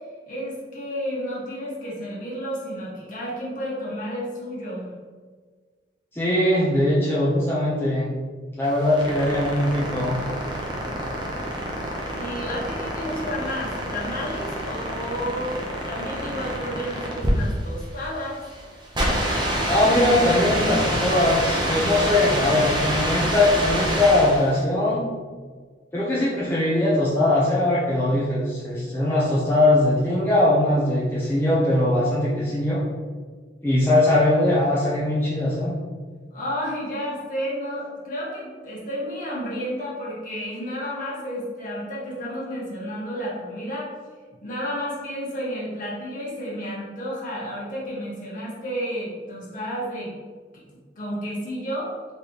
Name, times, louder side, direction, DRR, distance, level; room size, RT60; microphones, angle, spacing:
voice 1, 0.3-4.9 12.1-15.6 15.8-18.4 36.3-43.9 44.4-50.1 50.9-51.9, equal, 50° left, -7 dB, 1.4 m, -31 dB
voice 2, 6.1-8.1 8.5-10.2 19.7-25.0 25.9-32.8 33.6-35.7, left 1 dB, 15° left, -8 dB, 0.6 m, -21 dB
sound 1, 8.6-24.6, right 1 dB, 25° right, 0.6 m, -27 dB
3.9 x 3.3 x 2.9 m, 1.5 s
head